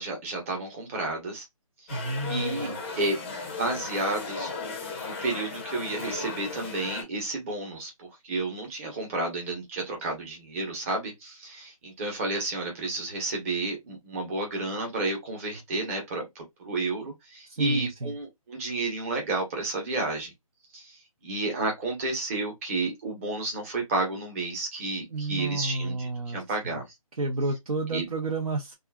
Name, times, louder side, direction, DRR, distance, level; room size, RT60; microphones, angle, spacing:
voice 1, 0.0-1.4 2.3-16.2 16.6-20.3 20.7-21.0 21.2-26.8 27.9-28.0, right 2 dB, 20° right, 1.0 m, -31 dB
sound 1, 1.9-7.0, left 4 dB, 20° left, 0.5 m, -36 dB
voice 2, 1.9-2.8 17.5-18.2 25.1-26.8 27.1-28.8, right 2 dB, 75° right, 1.0 m, -31 dB
2.6 x 2.4 x 2.3 m
figure-of-eight pair, 160°, 18 cm